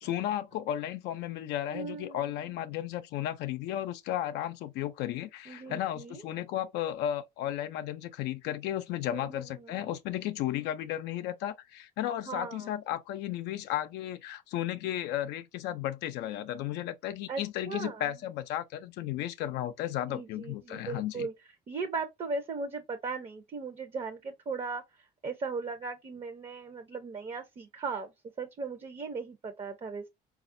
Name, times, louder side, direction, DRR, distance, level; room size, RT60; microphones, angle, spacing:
voice 1, 0.0-21.3, left 12 dB, 85° left, 0.4 m, -34 dB
voice 2, 1.7-2.5 5.5-6.2 9.1-9.9 12.2-12.7 17.3-18.0 20.1-21.3 21.7-24.8 25.2-28.1 28.4-30.1, right 4 dB, 35° right, 0.6 m, -38 dB
4.1 x 2.4 x 2.5 m
cardioid pair, 110°, 17 cm